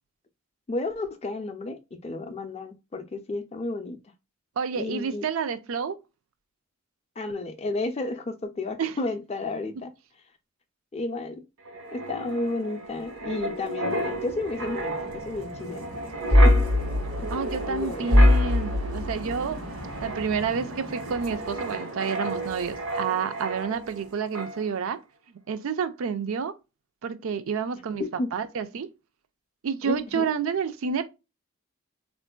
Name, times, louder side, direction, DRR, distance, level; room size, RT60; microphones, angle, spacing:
voice 1, 0.7-4.0 4.7-5.3 7.2-9.9 10.9-11.4 11.9-15.9 16.4-16.6 17.2-18.1 28.0-28.3 29.8-30.3, left 2 dB, 30° left, 0.4 m, -32 dB
voice 2, 4.6-6.0 8.8-9.0 17.3-19.6 20.0-25.0 25.5-26.5 27.0-28.0 28.3-28.9 29.6-31.1, right 6 dB, 70° right, 0.4 m, -29 dB
Wind, 11.6-24.0 24.3-24.6, left 1 dB, 85° right, 1.2 m, -26 dB
3.6 x 2.5 x 2.2 m
head